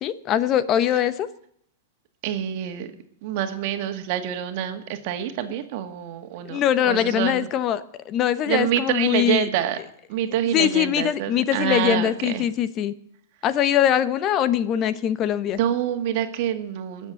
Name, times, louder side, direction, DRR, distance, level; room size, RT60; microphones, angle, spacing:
voice 1, 0.0-1.3 6.4-9.5 10.5-12.9 13.4-15.6, left 10 dB, 35° left, 15 dB, 0.9 m, -22 dB
voice 2, 2.2-2.9 3.2-7.5 8.5-9.8 10.1-12.5 15.6-17.1, right 11 dB, 55° right, 7 dB, 2.0 m, -27 dB
21.0 x 7.4 x 7.7 m, 0.69 s
hypercardioid pair, 130°, 0 cm